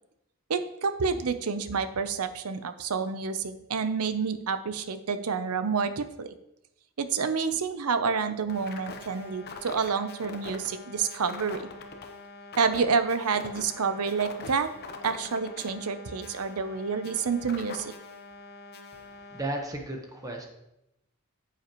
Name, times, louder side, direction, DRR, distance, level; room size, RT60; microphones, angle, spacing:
voice 1, 0.5-6.3 7.0-11.7 12.6-14.7 15.0-17.9, right 5 dB, 85° right, 10 dB, 0.7 m, -28 dB
sound 1, 8.5-19.4, left 3 dB, 45° left, 0.8 m, -44 dB
voice 2, 19.3-20.5, right 1 dB, 15° right, 1 dB, 1.1 m, -34 dB
9.1 x 7.9 x 3.0 m, 0.86 s
head